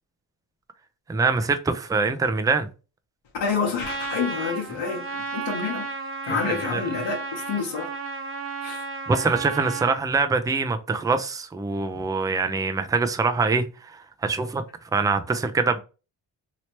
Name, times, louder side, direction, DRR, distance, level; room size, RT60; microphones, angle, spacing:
voice 1, 1.1-2.7 6.3-6.4 6.7-6.8 9.1-13.6 14.2-14.6 14.9-15.8, right 4 dB, 10° right, 0.4 m, -24 dB
voice 2, 3.4-5.9 6.2-7.9 8.6-8.8, left 5 dB, 70° left, 1.1 m, -28 dB
Trumpet, 3.8-10.0, right 4 dB, 30° right, 0.7 m, -33 dB
3.1 x 2.9 x 2.9 m
cardioid pair, 75°, 46 cm